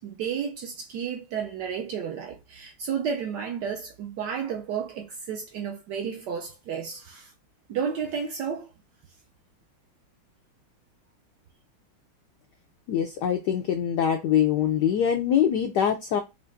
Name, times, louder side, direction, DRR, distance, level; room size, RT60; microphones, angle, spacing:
voice 1, 0.0-7.3 7.7-8.7, right 7 dB, 75° right, 1.0 m, -32 dB
voice 2, 12.9-16.2, left 9 dB, 80° left, 0.9 m, -23 dB
5.1 x 2.5 x 2.5 m
omnidirectional pair, 2.3 m